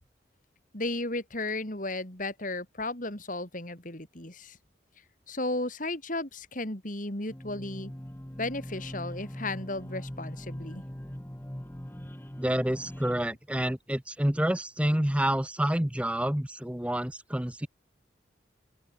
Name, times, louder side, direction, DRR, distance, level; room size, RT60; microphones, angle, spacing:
voice 1, 0.7-4.6 5.3-7.9 8.4-10.8, left 2 dB, 45° left, 3.7 m, -34 dB
sound 1, 7.3-13.3, equal, 10° left, 1.2 m, -41 dB
voice 2, 12.4-17.7, right 1 dB, 5° right, 0.7 m, -28 dB
open air
head